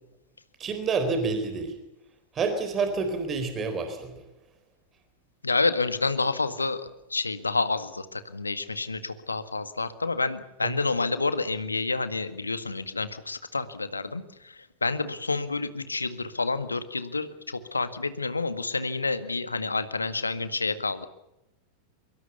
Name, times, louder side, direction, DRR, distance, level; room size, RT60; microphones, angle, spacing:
voice 1, 0.6-1.8 2.3-4.2 10.6-10.7, right 4 dB, 25° right, 9 dB, 4.1 m, -28 dB
voice 2, 5.4-21.1, left 3 dB, 80° left, 12 dB, 1.8 m, -29 dB
24.5 x 23.0 x 7.0 m, 0.88 s
figure-of-eight pair, 90°, 0 cm